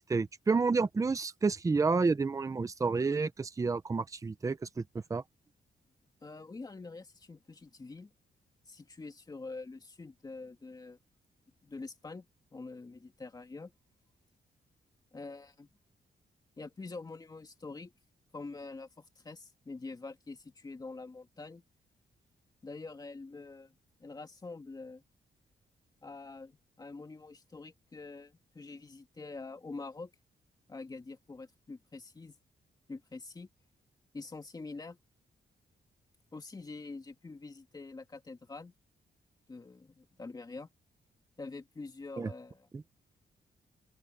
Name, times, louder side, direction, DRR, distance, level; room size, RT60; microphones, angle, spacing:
voice 1, 0.0-4.8 5.1-5.2 42.2-42.3 42.7-42.8, right 4 dB, 20° right, 0.7 m, -30 dB
voice 2, 6.2-8.1 8.7-11.0 11.6-12.3 12.5-13.7 15.1-15.7 16.6-17.9 18.3-21.6 22.6-23.7 24.0-25.0 26.0-30.1 30.7-32.4 32.9-33.5 34.1-35.0 36.3-38.7 39.5-40.7 41.4-42.7, left 3 dB, 20° left, 2.4 m, -45 dB
open air
wide cardioid pair, 170°, 18 cm